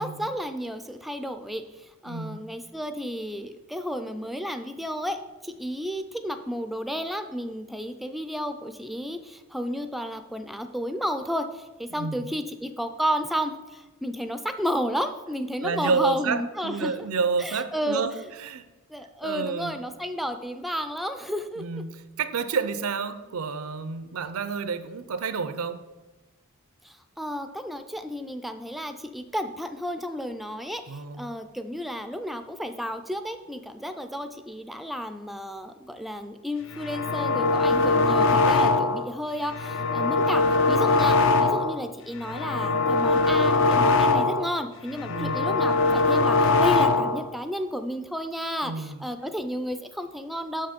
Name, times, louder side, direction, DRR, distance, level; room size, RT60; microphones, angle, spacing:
voice 1, 0.0-17.1 17.4-18.1 18.9-21.6 26.8-50.7, equal, ahead, 8 dB, 0.4 m, -32 dB
voice 2, 2.1-2.4 11.9-12.3 15.6-18.1 18.4-18.7 19.2-19.8 21.6-25.8 30.9-31.3 45.1-45.5 48.6-49.0, right 5 dB, 75° right, 12 dB, 0.5 m, -29 dB
sound 1, 36.7-39.1 39.5-41.8 42.2-44.6 44.9-47.3, left 3 dB, 60° left, 0.5 m, -22 dB
6.3 x 5.7 x 5.2 m, 1.1 s
head